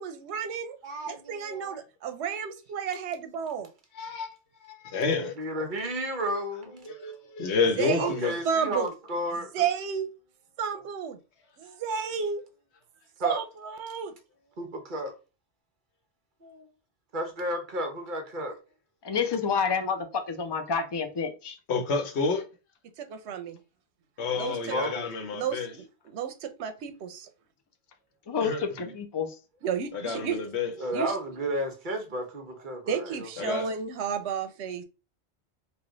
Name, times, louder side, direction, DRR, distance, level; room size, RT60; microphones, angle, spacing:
voice 1, 0.0-0.8 1.0-3.7 7.8-8.2 8.4-8.9 9.5-10.1 10.6-11.2 11.6-12.4 13.2-14.1 23.0-23.6 24.3-24.6 25.3-27.3 29.6-30.4 30.9-31.1 32.9-34.8, right 7 dB, 85° right, 0.9 m, -32 dB
voice 2, 0.8-1.8 5.2-6.9 8.0-9.7 13.2-13.4 14.6-15.1 16.4-16.7 17.1-18.5 24.5-25.1 30.8-33.6, equal, 50° right, 1.0 m, -33 dB
voice 3, 4.0-4.3 4.6-5.3 6.8-8.4 21.7-22.4 24.2-25.7 28.4-28.9 29.9-30.7 33.4-33.7, left 4 dB, 80° left, 1.1 m, -29 dB
voice 4, 19.0-21.6 28.3-29.4, left 6 dB, 35° left, 0.4 m, -29 dB
3.3 x 2.3 x 3.8 m
omnidirectional pair, 1.1 m